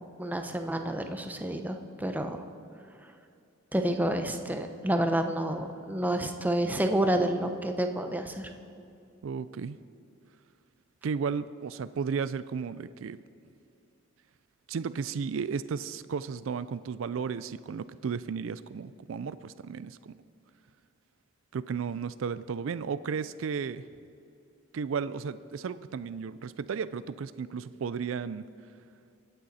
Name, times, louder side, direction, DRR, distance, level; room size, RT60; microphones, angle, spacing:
voice 1, 0.0-2.4 3.7-8.5, right 1 dB, 10° right, 6 dB, 0.8 m, -29 dB
voice 2, 9.2-9.8 11.0-13.2 14.7-20.1 21.5-23.8 24.7-28.5, right 6 dB, 75° right, 15 dB, 0.4 m, -34 dB
24.0 x 9.2 x 4.2 m, 2.5 s
head